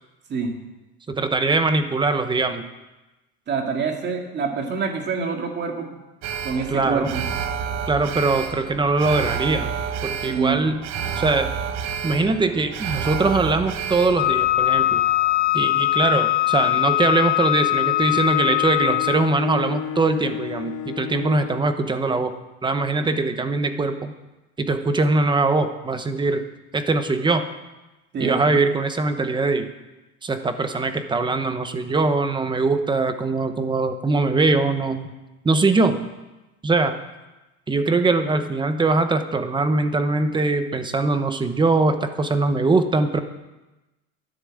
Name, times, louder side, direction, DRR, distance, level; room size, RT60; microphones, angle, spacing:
voice 1, 1.1-2.7 6.7-7.1 7.9-9.7 10.0-10.8 11.2-11.5 12.0-15.0 15.5-22.3 22.6-24.1 24.6-26.4 26.7-27.5 28.2-29.7 30.2-35.1 35.4-36.0 36.6-36.9 37.7-43.2, right 3 dB, 15° right, 9 dB, 0.8 m, -22 dB
voice 2, 3.5-5.9 6.4-7.2 10.2-10.6 23.0-23.1 28.1-28.6, right 5 dB, 30° right, 3 dB, 2.1 m, -26 dB
Alarm, 6.2-16.5 16.8-16.9, right 7 dB, 55° right, 1.2 m, -30 dB
Wind instrument woodwind instrument, 14.2-19.4, left 16 dB, 30° left, 0.5 m, -21 dB
Bowed string instrument, 17.7-21.8, left 9 dB, 60° left, 1.3 m, -33 dB
11.0 x 10.5 x 7.7 m, 1.1 s
cardioid pair, 145°, 33 cm